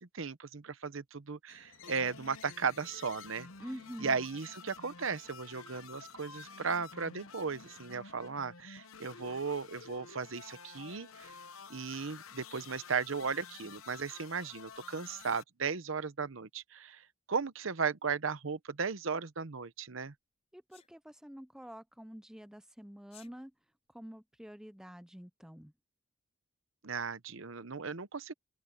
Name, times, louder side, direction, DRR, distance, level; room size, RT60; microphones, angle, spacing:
voice 1, 0.0-3.5 4.0-11.3 11.7-17.0 17.3-20.1 26.8-28.3, right 5 dB, 70° right, 0.9 m, -36 dB
sound 1, 1.5-7.8, left 7 dB, 70° left, 3.3 m, -60 dB
sound 2, 1.8-15.4, left 5 dB, 85° left, 1.0 m, -51 dB
voice 2, 3.6-4.2 20.5-23.5 23.9-25.7, equal, 5° right, 0.6 m, -47 dB
Sneeze, 20.7-20.9 23.0-23.3, left 8 dB, 30° left, 5.0 m, -57 dB
open air
head